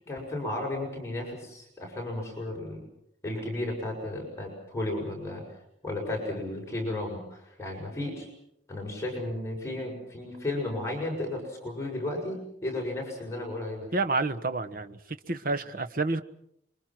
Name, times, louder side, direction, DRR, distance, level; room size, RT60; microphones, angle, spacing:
voice 1, 0.1-2.8 3.2-5.4 5.8-8.3 8.7-13.9, left 1 dB, 15° left, -1 dB, 6.7 m, -34 dB
voice 2, 13.9-15.0 15.3-16.2, right 3 dB, 50° right, 9 dB, 1.3 m, -29 dB
28.0 x 24.0 x 6.1 m, 0.75 s
head